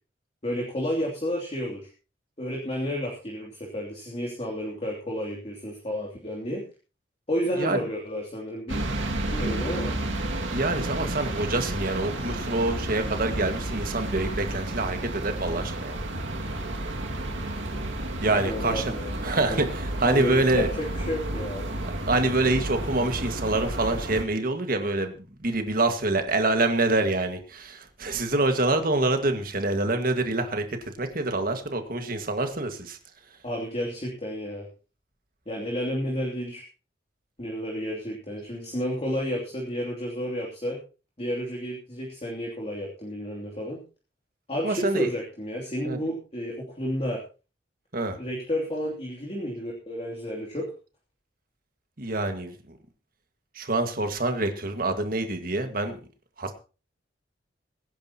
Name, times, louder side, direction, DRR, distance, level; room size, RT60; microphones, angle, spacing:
voice 1, 0.4-1.9 2.4-6.6 7.3-8.8 9.3-9.9 18.4-19.6 20.1-21.7 33.4-34.7 35.5-36.6 37.4-40.8 41.2-43.8 44.5-47.2 48.2-50.7, equal, 35° left, -2 dB, 2.9 m, -31 dB
sound 1, 8.7-24.2, right 1 dB, 90° right, 2.2 m, -31 dB
voice 2, 10.5-16.0 18.2-18.9 19.2-20.7 22.1-30.6 31.0-33.0 44.6-45.1 45.8-46.0 47.9-48.2 52.0-52.5 53.6-56.0 56.4-56.5, right 2 dB, 50° right, 7 dB, 1.8 m, -26 dB
23.0 x 10.5 x 2.9 m, 0.33 s
head